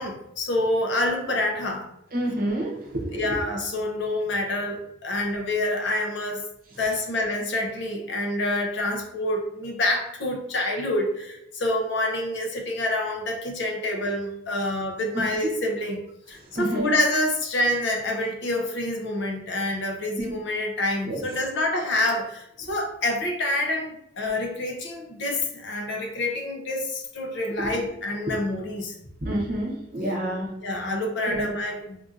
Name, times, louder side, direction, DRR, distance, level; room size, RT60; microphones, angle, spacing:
voice 1, 0.0-1.9 3.1-6.5 6.8-16.0 16.3-29.0 30.6-32.0, left 1 dB, 55° left, 1 dB, 0.6 m, -27 dB
voice 2, 2.1-3.1 16.6-16.9 21.1-21.2 27.6-27.7 29.2-30.5 31.3-31.4, right 1 dB, 45° right, -1 dB, 0.8 m, -28 dB
3.7 x 2.6 x 2.5 m, 0.82 s
head